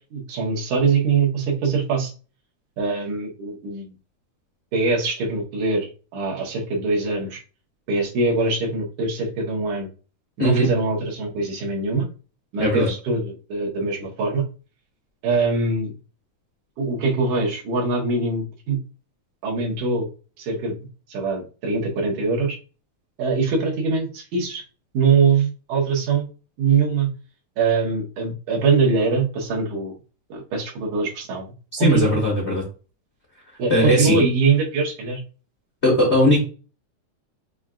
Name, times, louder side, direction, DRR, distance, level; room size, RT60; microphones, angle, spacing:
voice 1, 0.1-2.1 2.8-4.0 4.7-5.9 6.1-7.4 7.9-9.9 10.4-12.1 12.5-14.4 15.2-15.9 16.8-18.8 19.4-20.1 20.4-20.7 21.1-22.6 23.2-24.6 24.9-26.3 26.6-27.1 27.6-29.9 30.3-31.5 31.8-32.2 33.6-35.2, right 4 dB, 80° right, -3 dB, 2.6 m, -22 dB
voice 2, 12.6-12.9 31.7-32.6 33.7-34.2 35.8-36.4, left 1 dB, 80° left, -3 dB, 0.6 m, -19 dB
6.1 x 2.4 x 2.3 m, 0.35 s
omnidirectional pair, 3.5 m